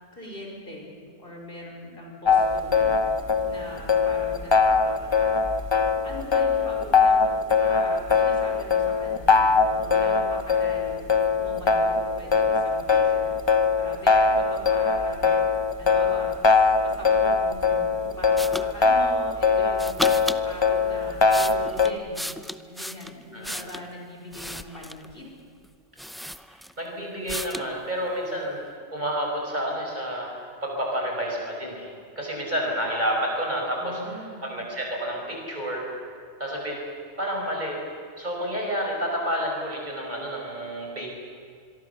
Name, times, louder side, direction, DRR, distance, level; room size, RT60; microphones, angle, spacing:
voice 1, 0.1-0.9 1.2-3.0 3.4-5.5 6.0-7.3 7.6-11.0 11.4-13.3 13.8-15.4 15.8-22.2 22.6-25.3 33.8-34.4, left 1 dB, 45° left, -1 dB, 5.3 m, -41 dB
sound 1, 2.3-21.9, left 4 dB, 25° left, 0.8 m, -21 dB
sound 2, 18.4-18.7 19.8-20.4 21.0-23.9 24.3-25.1 25.6-25.7 26.0-26.9 27.3-27.7, equal, ahead, 0.3 m, -34 dB
voice 2, 26.8-28.6 28.9-31.9 32.2-34.0 34.4-35.9 36.4-36.8 37.2-37.8 38.2-41.1, equal, 35° right, -1 dB, 5.7 m, -29 dB
26.0 x 23.0 x 7.1 m, 2.2 s
omnidirectional pair, 1.3 m